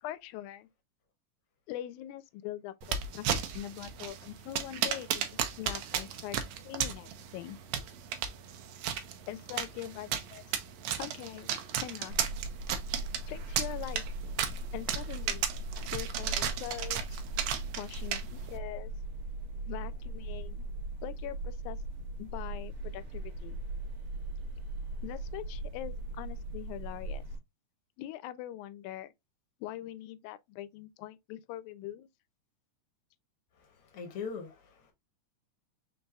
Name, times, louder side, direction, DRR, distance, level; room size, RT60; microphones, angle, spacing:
voice 1, 0.0-0.7 1.7-6.4 6.6-7.6 9.3-10.4 11.0-11.5 11.8-12.2 13.3-15.5 15.9-17.2 17.8-18.9 19.7-20.7 21.0-21.8 22.2-23.6 25.0-27.2 28.0-29.1 29.6-32.1, left 13 dB, 80° left, 1.9 m, -42 dB
Stabbing an Orange, 2.8-18.6, right 9 dB, 75° right, 1.8 m, -35 dB
sound 1, 12.1-27.4, right 2 dB, 50° right, 1.8 m, -39 dB
voice 2, 33.6-34.9, left 5 dB, 65° left, 1.4 m, -41 dB
5.3 x 3.7 x 2.2 m
omnidirectional pair, 3.6 m